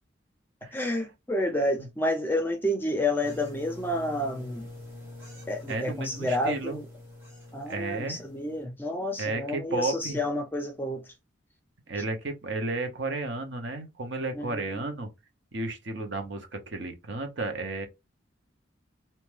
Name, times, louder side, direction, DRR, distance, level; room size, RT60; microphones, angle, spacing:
voice 1, 0.7-4.7 5.5-6.8 7.5-11.0 14.3-14.8, left 1 dB, 10° left, 0.4 m, -29 dB
sound 1, 3.2-8.6, left 1 dB, 10° right, 0.9 m, -45 dB
voice 2, 5.7-6.8 7.7-8.2 9.2-10.2 11.9-15.1 15.5-17.9, right 2 dB, 60° right, 0.8 m, -33 dB
2.7 x 2.2 x 3.1 m
head